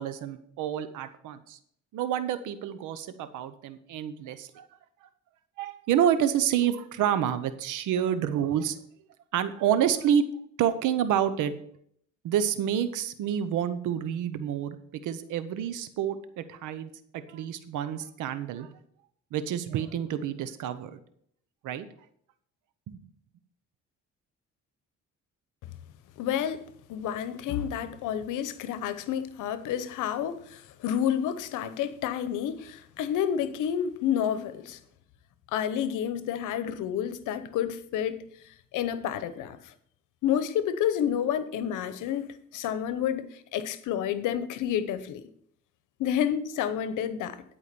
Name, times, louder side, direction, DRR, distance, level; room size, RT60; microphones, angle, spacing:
voice 1, 0.0-1.6 1.9-4.7 5.0-5.1 5.6-8.8 9.3-10.2 10.6-11.5 12.2-14.8 15.0-18.7 19.3-21.0 21.6-21.9 22.9-23.0, right 9 dB, 90° right, 0.8 m, -28 dB
voice 2, 26.2-26.6 26.9-34.8 35.5-38.2 38.7-39.7 40.2-45.2 46.0-47.4, left 9 dB, 90° left, 0.9 m, -29 dB
11.0 x 4.9 x 6.8 m
cardioid pair, 90°, 30 cm